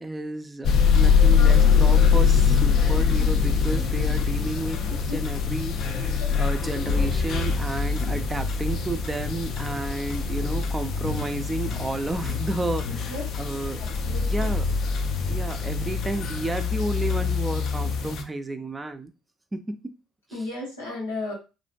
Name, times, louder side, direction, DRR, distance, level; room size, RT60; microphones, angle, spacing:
voice 1, 0.0-13.8 14.2-14.8 15.3-19.1 19.5-19.9 20.3-20.5, right 2 dB, 20° right, 8 dB, 0.4 m, -32 dB
sound 1, 0.6-18.2, left 6 dB, 55° left, 0.4 m, -23 dB
voice 2, 1.2-1.6 5.1-5.2 6.2-6.3 12.9-13.3 14.1-14.5 20.3-21.3, left 2 dB, 90° left, -4 dB, 1.1 m, -34 dB
2.5 x 2.1 x 2.5 m, 0.30 s
figure-of-eight pair, 55°, 0 cm